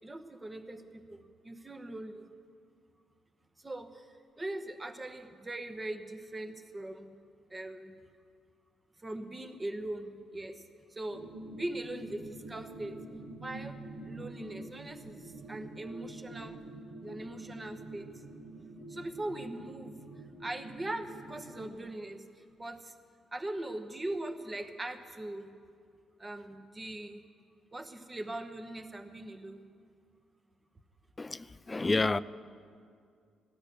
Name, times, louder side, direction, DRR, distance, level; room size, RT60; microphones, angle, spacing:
voice 1, 0.0-2.3 3.6-7.1 7.5-7.9 9.0-10.6 10.9-11.2 11.5-13.0 13.4-16.6 17.0-18.1 18.9-19.9 20.4-22.9 23.3-25.5 26.2-27.2 27.7-29.7, right 1 dB, 20° right, 1.0 m, -41 dB
sound 1, 11.1-21.8, right 2 dB, 65° right, 1.0 m, -46 dB
voice 2, 31.2-32.2, left 3 dB, 20° left, 0.3 m, -29 dB
14.5 x 9.7 x 6.9 m
cardioid pair, 90°, 0 cm